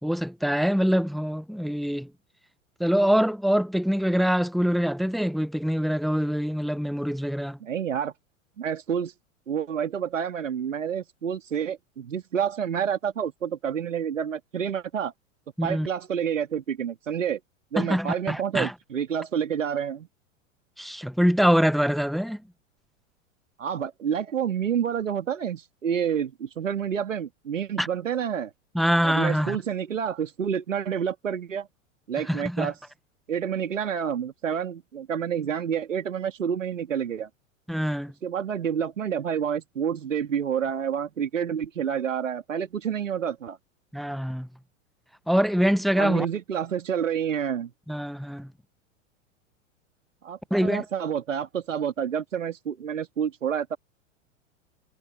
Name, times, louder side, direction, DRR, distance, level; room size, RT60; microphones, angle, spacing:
voice 1, 0.0-2.1 2.8-7.6 15.6-15.9 17.8-18.7 20.8-22.4 27.8-27.9 28.7-29.6 32.2-32.7 37.7-38.1 43.9-44.5 45.3-46.3 47.9-48.5 50.5-50.8, equal, ahead, 1.6 m, -24 dB
voice 2, 7.6-8.1 8.6-9.1 9.5-15.1 15.6-17.4 17.7-20.1 23.6-28.5 29.0-31.7 32.1-32.7 33.3-37.3 38.2-43.6 45.9-47.7 50.2-53.8, right 8 dB, 70° right, 2.5 m, -28 dB
figure-of-eight pair, 95°, 40 cm